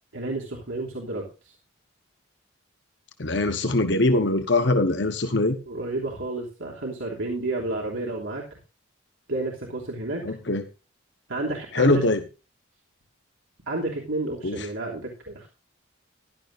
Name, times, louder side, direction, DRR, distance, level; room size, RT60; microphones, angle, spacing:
voice 1, 0.1-1.5 5.6-8.4 9.3-10.2 11.3-12.0 13.7-15.5, right 2 dB, 80° right, -1 dB, 3.1 m, -31 dB
voice 2, 3.2-5.6 10.2-10.6 11.7-12.2 14.4-14.7, left 2 dB, 60° left, 8 dB, 1.2 m, -22 dB
15.5 x 11.5 x 2.6 m, 0.30 s
head